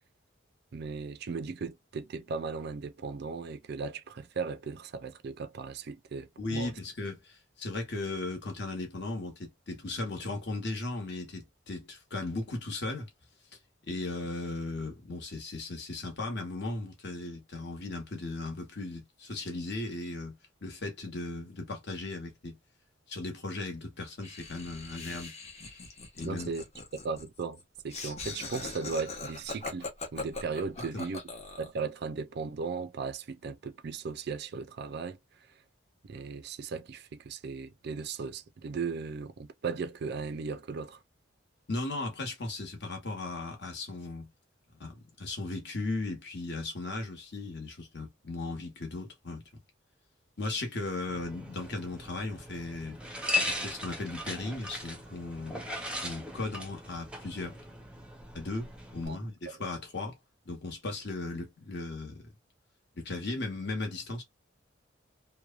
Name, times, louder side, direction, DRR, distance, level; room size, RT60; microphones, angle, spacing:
voice 1, 0.7-6.7 26.2-26.6 27.0-31.2 31.6-35.2 36.1-41.0 59.1-59.2, right 5 dB, 60° right, 0.4 m, -37 dB
voice 2, 6.4-13.1 13.9-22.6 23.1-25.3 26.2-26.5 30.9-31.1 41.7-44.3 44.8-49.4 50.4-53.0 53.5-55.6 56.0-57.6 58.3-60.2 60.5-62.2 62.9-64.2, left 2 dB, 65° left, 1.1 m, -37 dB
Laughter, 24.2-31.8, left 3 dB, 35° left, 0.8 m, -41 dB
sound 1, 51.1-59.1, left 2 dB, 5° right, 0.6 m, -38 dB
3.0 x 2.1 x 2.4 m
head